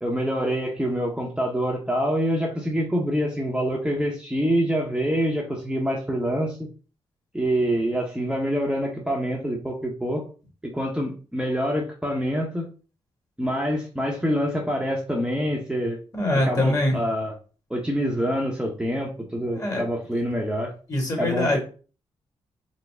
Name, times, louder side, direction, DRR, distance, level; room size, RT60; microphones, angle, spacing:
voice 1, 0.0-6.6 7.3-10.3 10.6-12.7 13.4-16.0 16.3-17.3 17.7-20.7 21.2-21.6, equal, 5° right, -1 dB, 0.8 m, -26 dB
voice 2, 16.1-17.0 19.5-19.8 20.9-21.6, left 1 dB, 30° left, 1 dB, 1.6 m, -23 dB
4.0 x 2.0 x 3.4 m, 0.37 s
supercardioid pair, 55°, 11 cm